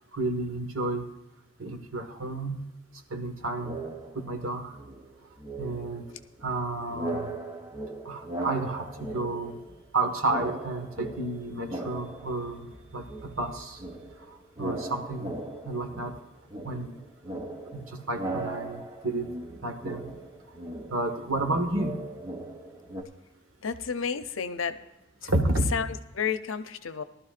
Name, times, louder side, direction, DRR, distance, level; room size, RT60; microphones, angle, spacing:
voice 1, 0.1-1.0 1.6-2.6 3.1-3.8 4.1-4.7 5.6-6.0 6.4-7.3 8.0-9.6 9.9-12.7 12.9-13.8 14.6-15.4 15.6-16.1 16.6-16.9 17.7-19.3 19.6-20.1 20.9-22.0 25.3-25.7, right 2 dB, 80° right, 4 dB, 1.6 m, -31 dB
sound 1, 3.6-4.5 4.7-6.6 6.9-10.0 10.2-12.8 13.1-23.0, right 1 dB, 20° right, 1.0 m, -38 dB
voice 2, 23.6-24.8 25.7-27.0, left 6 dB, 80° left, 10 dB, 0.7 m, -31 dB
18.5 x 12.5 x 2.5 m, 0.95 s
head